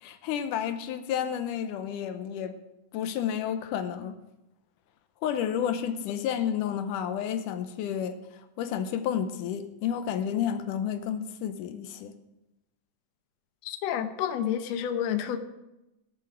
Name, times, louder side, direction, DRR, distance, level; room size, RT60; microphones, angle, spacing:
voice 1, 0.0-2.6 2.9-4.2 5.2-12.2, left 9 dB, 85° left, 2.3 m, -31 dB
voice 2, 13.7-15.4, left 9 dB, 65° left, 1.8 m, -29 dB
17.5 x 7.0 x 6.2 m
omnidirectional pair, 3.7 m